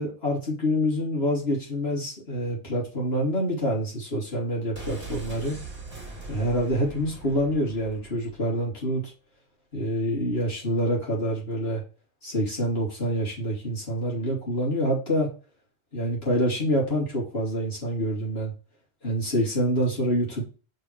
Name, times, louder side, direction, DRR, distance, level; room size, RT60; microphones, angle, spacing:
voice 1, 0.0-5.6 6.3-9.0 9.7-11.8 12.2-15.3 15.9-18.5 19.0-20.4, equal, 65° left, -5 dB, 3.6 m, -26 dB
sound 1, 4.7-8.5 8.8-8.9, right 3 dB, 35° right, 2.6 m, -41 dB
5.5 x 4.9 x 4.5 m, 0.36 s
omnidirectional pair, 1.1 m